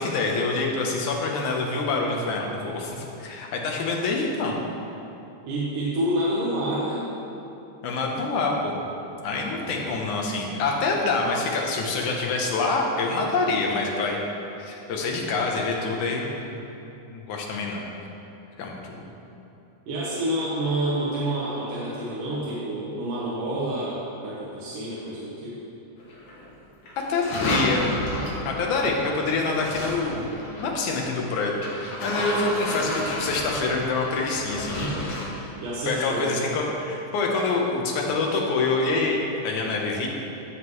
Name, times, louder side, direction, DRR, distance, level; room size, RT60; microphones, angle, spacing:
voice 1, 0.0-4.5 7.8-8.8 9.2-14.2 14.6-16.6 17.1-17.9 18.6-19.0 27.1-27.9 28.5-30.3 30.6-34.9 35.4-35.5 35.9-40.1, left 3 dB, 75° left, 0 dB, 2.4 m, -26 dB
voice 2, 5.4-7.0 9.3-9.9 19.9-25.6 34.8-35.1 35.6-36.3, right 1 dB, 85° right, -8 dB, 2.8 m, -28 dB
sound 1, 26.0-26.5 26.8-30.8 31.6-35.3, left 1 dB, 55° left, 2.1 m, -31 dB
13.0 x 7.4 x 3.2 m, 2.9 s
omnidirectional pair, 3.6 m